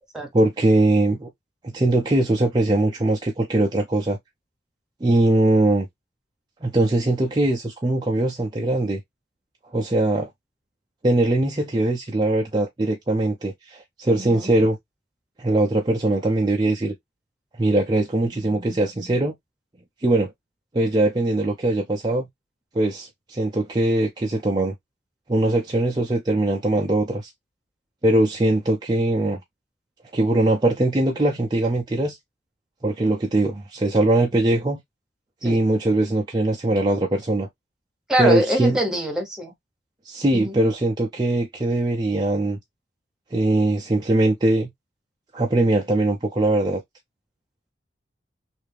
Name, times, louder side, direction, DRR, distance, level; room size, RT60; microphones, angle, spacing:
voice 1, 0.3-1.3 1.7-4.2 5.0-5.9 6.6-9.0 9.7-10.3 11.0-14.8 15.4-16.9 17.6-19.3 20.0-20.3 20.7-22.3 22.7-24.7 25.3-27.3 28.0-29.4 30.1-32.2 32.8-34.8 35.4-37.5 38.2-38.8 40.0-42.6 43.3-44.7 45.3-46.8, right 2 dB, 25° right, 0.5 m, -21 dB
voice 2, 14.2-14.5 35.4-35.6 38.1-39.5 40.3-40.6, equal, 5° right, 0.9 m, -24 dB
3.3 x 2.6 x 3.3 m
head